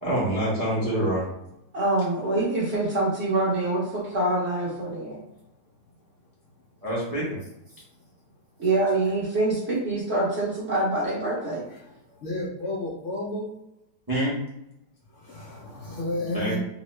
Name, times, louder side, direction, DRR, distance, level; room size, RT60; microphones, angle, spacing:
voice 1, 0.0-1.2 6.8-7.4 14.1-14.4 16.3-16.6, right 1 dB, 30° right, -6 dB, 0.4 m, -26 dB
voice 2, 1.7-5.2 8.6-11.6, right 2 dB, 55° right, -7 dB, 0.7 m, -25 dB
voice 3, 12.2-13.5 15.3-16.6, left 2 dB, 85° left, -4 dB, 0.6 m, -31 dB
2.9 x 2.1 x 3.1 m, 0.85 s
omnidirectional pair, 1.9 m